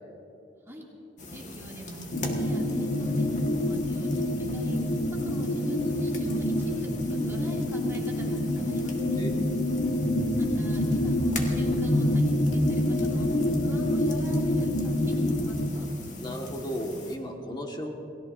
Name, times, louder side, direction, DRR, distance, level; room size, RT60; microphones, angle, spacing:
fireplace-jim, 1.2-17.2, left 2 dB, 45° left, 1.6 m, -41 dB
voice 1, 1.3-4.8 5.2-9.2 10.4-13.3 13.6-15.9, equal, 15° right, -4 dB, 2.5 m, -41 dB
sound 1, 2.1-15.7, left 1 dB, 70° left, 1.3 m, -27 dB
voice 2, 16.2-17.9, equal, 25° left, 1 dB, 1.6 m, -34 dB
29.0 x 17.0 x 2.6 m, 2.8 s
head